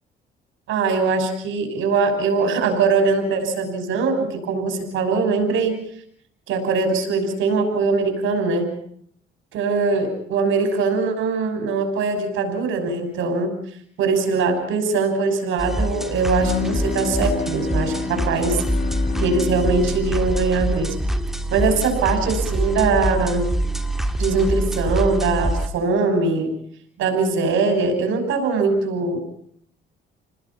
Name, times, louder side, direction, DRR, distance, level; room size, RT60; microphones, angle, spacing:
voice 1, 0.7-5.8 6.5-8.7 9.5-13.6 14.0-18.6 19.2-21.0 21.5-23.5 24.2-26.5 27.0-29.3, right 4 dB, 85° right, 6 dB, 6.3 m, -21 dB
sound 1, 15.6-25.7, equal, ahead, 2.7 m, -25 dB
Bowed string instrument, 16.4-21.8, left 5 dB, 50° left, 4.1 m, -30 dB
29.5 x 20.0 x 5.7 m, 0.66 s
cardioid pair, 90°, 20 cm